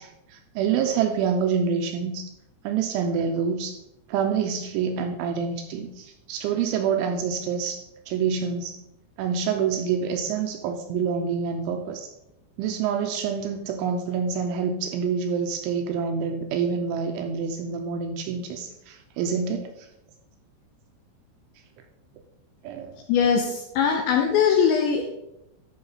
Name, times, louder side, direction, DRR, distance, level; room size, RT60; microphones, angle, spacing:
voice 1, 0.0-2.3 2.6-3.7 4.1-7.8 8.1-8.7 9.2-12.1 12.6-19.9 22.6-23.0, right 6 dB, 80° right, 5 dB, 2.8 m, -27 dB
voice 2, 23.1-25.1, left 7 dB, 85° left, 3 dB, 2.6 m, -21 dB
12.5 x 5.9 x 4.1 m, 0.88 s
omnidirectional pair, 6.0 m